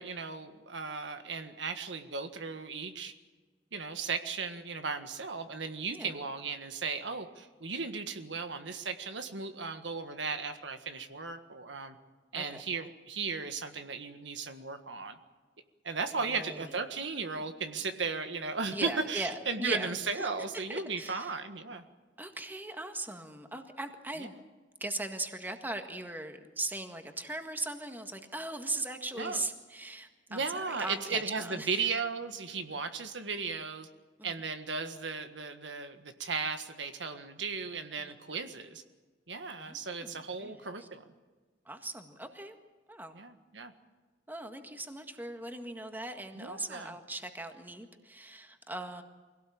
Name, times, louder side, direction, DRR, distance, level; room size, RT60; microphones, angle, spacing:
voice 1, 0.0-3.1 3.7-12.0 12.3-15.2 15.8-21.8 24.2-24.3 29.1-29.4 30.3-33.9 34.2-38.8 39.3-41.0 43.1-43.7 46.4-47.0, right 4 dB, 85° right, 7 dB, 1.7 m, -36 dB
voice 2, 16.3-16.7 18.7-20.3 20.5-21.3 22.2-24.3 24.8-31.7 34.2-34.4 38.0-38.2 39.6-40.9 41.6-42.5 42.9-43.2 44.3-49.0, right 2 dB, 10° right, 6 dB, 1.7 m, -39 dB
24.5 x 17.5 x 8.7 m, 1.3 s
head